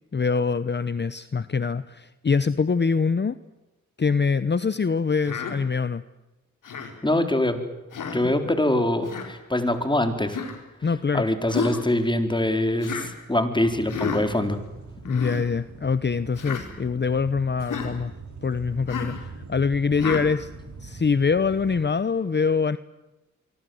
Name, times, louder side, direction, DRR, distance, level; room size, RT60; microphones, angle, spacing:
voice 1, 0.1-3.4 4.0-6.0 10.8-11.3 15.0-18.1 18.4-20.5 20.8-22.8, left 5 dB, 35° left, 14 dB, 0.9 m, -24 dB
Human voice, 5.2-5.5 6.6-6.9 7.9-8.2 9.0-9.3 10.3-10.6 11.5-11.9 12.8-13.1 13.9-14.2 15.0-15.4 16.4-16.6 17.6-17.9 18.9-19.2 20.0-20.3, left 6 dB, 80° left, 4.5 m, -31 dB
voice 2, 7.0-7.6 8.1-10.4 11.1-14.6, left 1 dB, 15° left, 7 dB, 4.1 m, -24 dB
sound 1, 13.6-21.8, right 3 dB, 65° right, 6.7 m, -43 dB
25.5 x 24.5 x 7.9 m, 1.0 s
cardioid pair, 65°, 31 cm